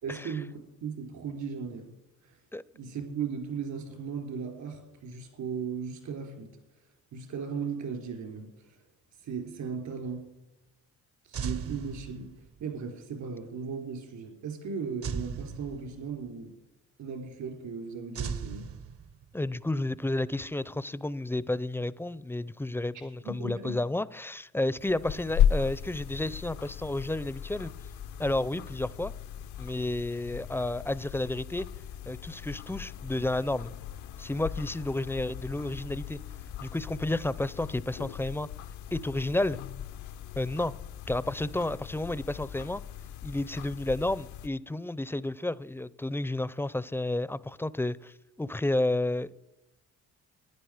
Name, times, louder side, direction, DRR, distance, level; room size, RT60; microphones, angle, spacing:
voice 1, 0.0-2.0 2.2-2.4 2.7-6.5 7.1-8.8 9.2-10.3 11.2-16.5 17.0-18.7 23.2-23.7, right 6 dB, 75° right, 3.6 m, -37 dB
sound 1, 11.3-12.6 15.0-16.3 18.1-19.4, right 6 dB, 50° right, 0.7 m, -37 dB
voice 2, 19.3-27.7 28.2-29.1 29.6-31.7 32.1-33.7 34.2-36.2 36.6-38.5 38.9-39.6 40.4-40.7 41.1-42.8 43.2-49.3, left 2 dB, 10° left, 0.4 m, -31 dB
sound 2, 24.8-44.5, left 9 dB, 75° left, 0.6 m, -36 dB
15.0 x 10.0 x 4.9 m
cardioid pair, 90°, 30 cm